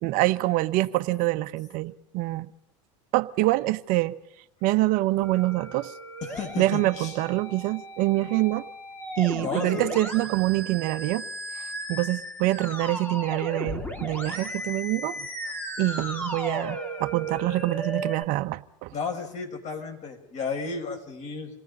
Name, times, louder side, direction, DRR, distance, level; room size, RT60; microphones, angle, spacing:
voice 1, 0.0-2.5 3.1-4.1 4.6-5.9 6.6-8.6 9.2-11.2 11.6-15.2 15.8-18.9, right 18 dB, 60° right, 1.1 m, -25 dB
Musical instrument, 5.2-18.2, right 1 dB, 10° left, 3.4 m, -35 dB
voice 2, 6.2-7.2 9.4-10.0 18.9-21.5, left 5 dB, 45° left, 6.1 m, -33 dB
27.5 x 18.5 x 5.5 m
supercardioid pair, 100°, 16 cm